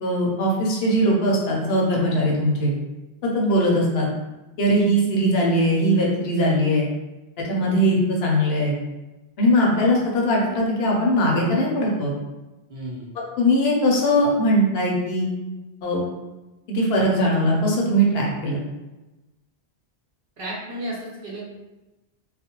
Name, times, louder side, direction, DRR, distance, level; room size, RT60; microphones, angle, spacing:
voice 1, 0.0-2.7 3.2-4.1 4.6-6.9 7.5-8.8 9.4-12.1 13.4-15.3 15.8-16.0 16.7-18.6, equal, 75° left, -2 dB, 0.8 m, -20 dB
voice 2, 12.7-13.1 20.4-21.4, right 1 dB, 60° right, -5 dB, 0.8 m, -33 dB
2.4 x 2.0 x 2.8 m, 1.1 s
omnidirectional pair, 1.1 m